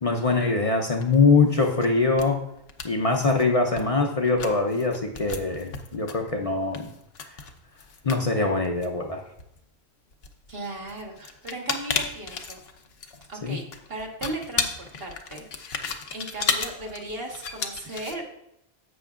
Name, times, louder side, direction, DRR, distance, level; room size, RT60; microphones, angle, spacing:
voice 1, 0.0-2.5 2.8-6.9 8.0-9.2 13.4-13.6, left 3 dB, 40° left, 2 dB, 0.7 m, -23 dB
sound 1, 1.0-1.2 1.5-2.2 2.6-3.4 3.8-3.9 4.2-9.6 10.1-18.2, left 5 dB, 70° left, 1.0 m, -33 dB
voice 2, 10.5-12.6 13.3-13.6 13.9-18.2, right 2 dB, 65° right, 0 dB, 1.6 m, -37 dB
11.0 x 7.9 x 2.4 m, 0.81 s
omnidirectional pair, 1.1 m